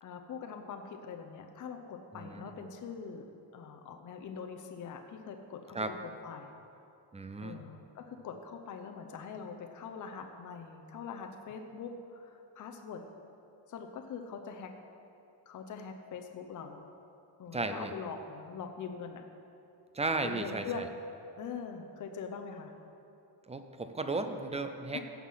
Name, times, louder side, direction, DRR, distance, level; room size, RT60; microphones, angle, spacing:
voice 1, 0.0-3.2 3.5-6.5 7.4-13.0 13.7-14.7 15.5-16.9 17.4-19.2 20.2-20.9 21.4-22.7 24.9-25.0, left 6 dB, 40° left, 4 dB, 0.7 m, -43 dB
voice 2, 2.1-2.5 5.7-5.9 7.1-7.6 17.5-17.9 19.9-20.9 23.5-25.0, right 3 dB, 15° right, 7 dB, 0.4 m, -35 dB
16.0 x 6.0 x 5.6 m, 2.7 s
cardioid pair, 160°, 45 cm